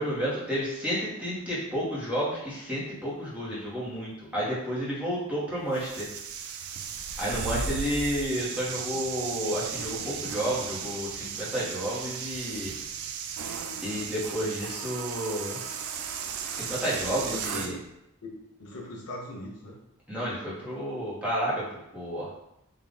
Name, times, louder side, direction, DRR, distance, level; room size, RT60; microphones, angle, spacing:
voice 1, 0.0-6.1 7.2-12.7 13.8-15.6 16.5-17.8 20.1-21.6 21.9-22.3, equal, 5° right, -8 dB, 1.0 m, -31 dB
sound 1, 5.7-17.8, right 6 dB, 75° right, 0.4 m, -36 dB
voice 2, 17.1-17.8 18.2-19.8, left 1 dB, 85° left, -2 dB, 0.9 m, -40 dB
3.8 x 2.4 x 3.6 m, 0.83 s
head